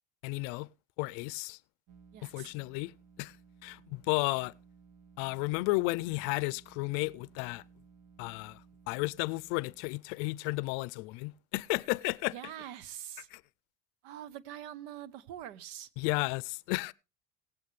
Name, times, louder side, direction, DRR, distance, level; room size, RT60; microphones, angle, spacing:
voice 1, 0.2-0.7 1.0-1.6 2.3-2.9 3.2-3.3 3.6-4.5 5.2-7.6 8.2-8.6 8.9-12.3 13.3-13.4 16.0-16.9, left 23 dB, 80° left, 0.5 m, -33 dB
sound 1, 1.9-9.9, right 6 dB, 65° right, 2.0 m, -59 dB
voice 2, 2.1-2.5 12.3-13.3 14.0-15.9, right 11 dB, 80° right, 1.0 m, -44 dB
18.0 x 8.6 x 3.2 m
supercardioid pair, 110°, 35 cm